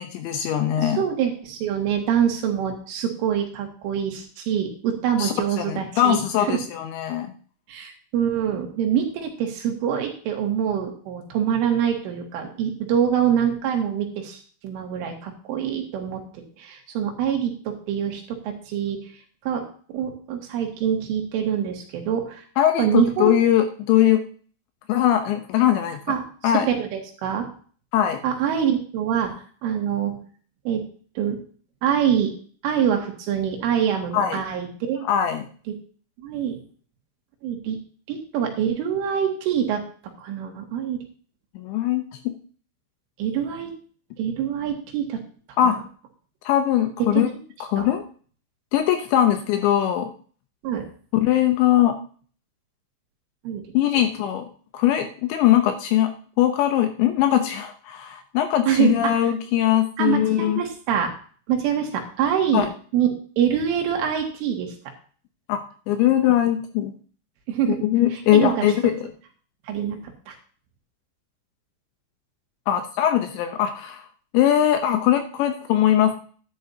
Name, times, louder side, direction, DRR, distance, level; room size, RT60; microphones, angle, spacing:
voice 1, 0.0-1.0 5.2-7.3 22.6-24.2 24.9-26.0 26.4-26.7 27.9-28.2 34.1-34.4 35.0-35.5 41.6-42.4 45.6-45.8 46.4-47.3 47.6-48.0 48.7-50.1 51.2-52.0 53.7-54.5 54.7-60.6 62.5-62.7 65.5-65.6 65.9-66.9 67.8-69.0 72.7-74.0 74.3-76.2, left 11 dB, 75° left, 6 dB, 2.8 m, -21 dB
voice 2, 0.8-6.2 6.5-6.6 7.7-19.0 19.5-19.6 19.9-22.4 22.8-23.4 26.1-26.3 26.7-27.5 28.2-29.3 29.6-30.2 30.7-30.8 31.2-31.4 31.8-32.3 32.6-35.0 36.2-36.6 37.4-37.8 38.1-39.8 40.2-41.0 43.2-43.7 44.2-45.2 45.6-45.8 47.1-47.2 47.8-47.9 50.6-50.8 53.5-53.6 58.7-59.1 60.0-61.1 61.5-62.7 62.9-63.1 63.4-64.7 67.5-67.8 68.3-68.7 69.7-70.0 70.3-70.4, right 9 dB, 75° right, 2 dB, 4.2 m, -25 dB
11.0 x 11.0 x 2.8 m, 0.43 s
omnidirectional pair, 5.8 m